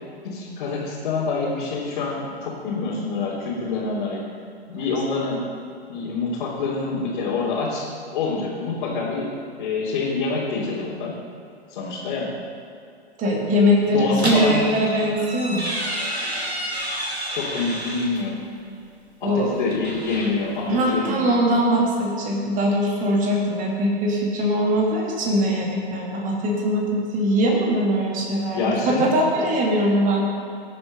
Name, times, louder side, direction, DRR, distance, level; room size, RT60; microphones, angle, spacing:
voice 1, 0.2-4.2 4.7-5.4 5.9-7.9 8.1-9.3 9.6-11.1 11.7-12.3 13.9-14.9 17.3-18.4 19.2-21.5 28.5-29.1, left 4 dB, 50° left, -7 dB, 3.3 m, -26 dB
voice 2, 13.2-15.8 19.2-19.5 20.7-30.3, equal, 25° right, -1 dB, 2.4 m, -21 dB
sound 1, 14.2-18.2 19.5-20.7, equal, 85° right, 2.4 m, -30 dB
19.0 x 7.7 x 5.4 m, 2.5 s
figure-of-eight pair, 110°, 32 cm